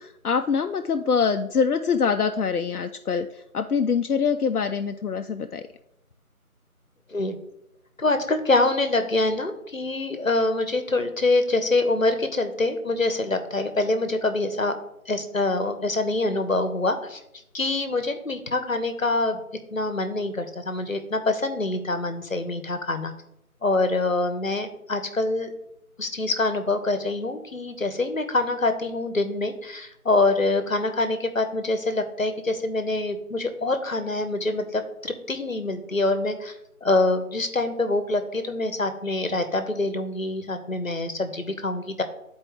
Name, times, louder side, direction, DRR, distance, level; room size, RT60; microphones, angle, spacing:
voice 1, 0.0-5.7, left 6 dB, 85° left, 6 dB, 0.5 m, -24 dB
voice 2, 8.0-14.8 15.1-17.2 17.5-19.4 19.7-23.1 23.6-25.5 26.0-36.5 36.8-42.0, left 2 dB, 65° left, 8 dB, 1.0 m, -25 dB
9.5 x 4.4 x 3.2 m, 0.81 s
figure-of-eight pair, 175°, 44 cm